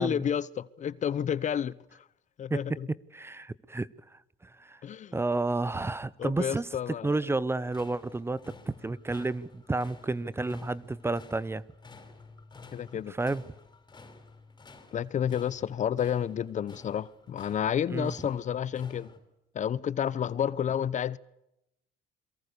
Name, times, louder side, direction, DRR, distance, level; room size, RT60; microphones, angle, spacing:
voice 1, 0.0-1.7 2.4-2.9 4.8-5.1 6.2-7.1 12.7-13.1 14.9-19.1 19.5-21.2, left 9 dB, 45° left, 0.9 m, -30 dB
voice 2, 2.5-3.9 4.4-4.8 5.1-11.6 13.1-13.4 17.9-18.1, right 2 dB, 15° right, 0.9 m, -31 dB
sound 1, 7.6-19.2, left 3 dB, 25° left, 5.2 m, -52 dB
29.0 x 23.0 x 6.9 m
cardioid pair, 110°, 17 cm